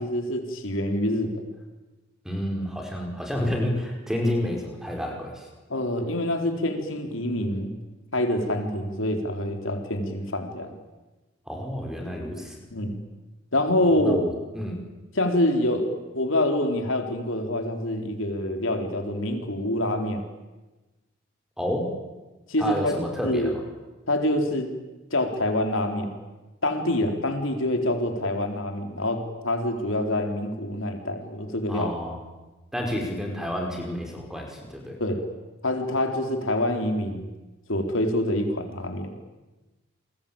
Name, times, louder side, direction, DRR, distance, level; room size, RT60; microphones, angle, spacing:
voice 1, 0.0-1.4 5.7-7.8 8.1-10.7 12.7-13.0 13.5-14.2 15.2-20.2 22.5-23.5 24.1-24.7 25.1-26.1 26.6-31.9 35.0-35.3 35.6-37.3 37.7-39.1, left 1 dB, 85° left, 4 dB, 4.1 m, -26 dB
voice 2, 2.3-5.5 11.5-12.6 14.0-14.8 21.6-21.9 22.6-23.6 31.7-32.2 32.7-35.0, left 1 dB, ahead, 1 dB, 5.2 m, -29 dB
29.5 x 22.0 x 8.9 m, 1.1 s
head